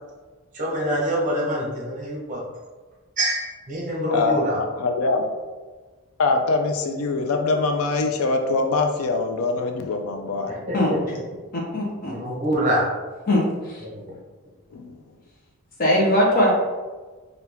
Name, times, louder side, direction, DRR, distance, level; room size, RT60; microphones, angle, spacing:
voice 1, 0.5-2.4 3.2-4.6 10.5-11.2 12.1-12.9 13.8-14.2, equal, 35° right, -3 dB, 1.0 m, -25 dB
voice 2, 4.1-5.4 6.2-10.6 14.7-15.0, left 3 dB, 75° left, 4 dB, 0.4 m, -23 dB
voice 3, 11.5-12.2 13.3-13.8 15.8-16.5, left 1 dB, 40° left, -3 dB, 1.0 m, -21 dB
4.4 x 2.8 x 3.4 m, 1.3 s
head